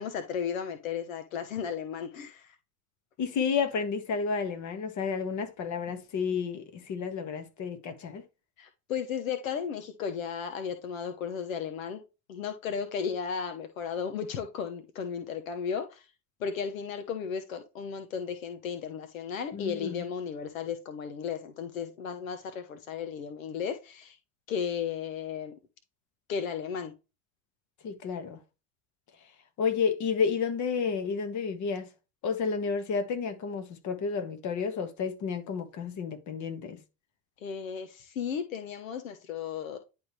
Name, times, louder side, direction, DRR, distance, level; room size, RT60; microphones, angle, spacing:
voice 1, 0.0-2.5 8.6-12.0 12.3-16.1 16.4-24.2 24.5-25.5 26.3-26.9 37.4-39.8, left 7 dB, 85° left, 1.0 m, -34 dB
voice 2, 3.2-8.2 19.5-20.0 27.8-28.4 29.6-31.9 32.2-36.8, left 5 dB, 45° left, 1.6 m, -31 dB
10.5 x 3.6 x 3.1 m
hypercardioid pair, 80°, 40 cm